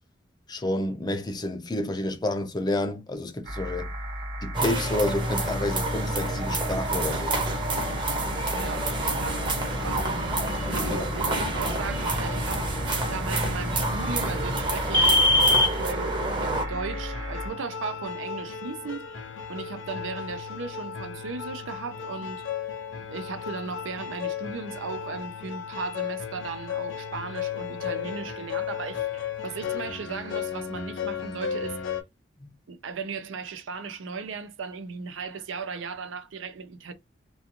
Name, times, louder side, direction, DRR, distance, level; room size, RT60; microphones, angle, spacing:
voice 1, 0.5-3.9 4.4-7.3 32.4-32.5, left 1 dB, 20° left, 0.5 m, -29 dB
sound 1, 3.4-17.5, equal, 50° right, 1.0 m, -35 dB
sound 2, 4.5-16.6, right 1 dB, 25° right, 0.8 m, -26 dB
voice 2, 8.5-9.5 9.8-10.4 10.7-12.7 13.1-19.2 19.5-22.4 23.1-31.9 32.7-36.9, right 4 dB, 85° right, 0.5 m, -36 dB
sound 3, 16.5-32.0, left 7 dB, 75° left, 0.5 m, -35 dB
2.4 x 2.3 x 2.8 m
head